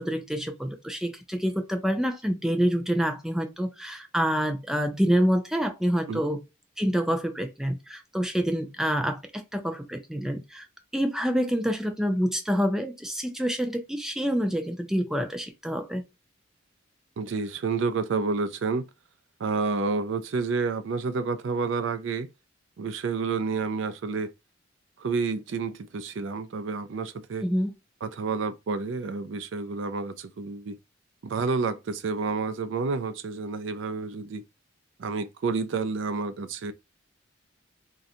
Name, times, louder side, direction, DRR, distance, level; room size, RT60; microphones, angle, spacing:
voice 1, 0.0-6.4 6.8-10.7 10.9-16.0 27.4-27.7, equal, 5° right, 0.4 m, -27 dB
voice 2, 17.2-18.8 19.4-22.3 22.8-24.3 25.0-27.5 28.0-30.8 31.2-34.4 35.0-36.7, right 4 dB, 70° right, 0.4 m, -29 dB
3.7 x 2.1 x 2.7 m
head